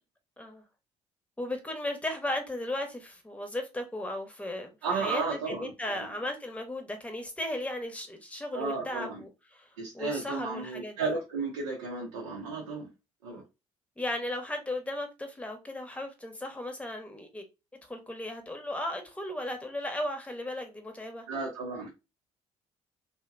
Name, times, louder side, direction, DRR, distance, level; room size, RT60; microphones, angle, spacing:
voice 1, 1.4-11.0 13.3-13.4 14.0-17.4 17.9-21.2, left 1 dB, 10° left, 0.8 m, -36 dB
voice 2, 4.8-6.1 8.5-9.2 9.8-12.9 13.2-13.4 21.3-21.9, right 4 dB, 85° right, 0.6 m, -33 dB
2.7 x 2.1 x 2.4 m
hypercardioid pair, 55°, 16 cm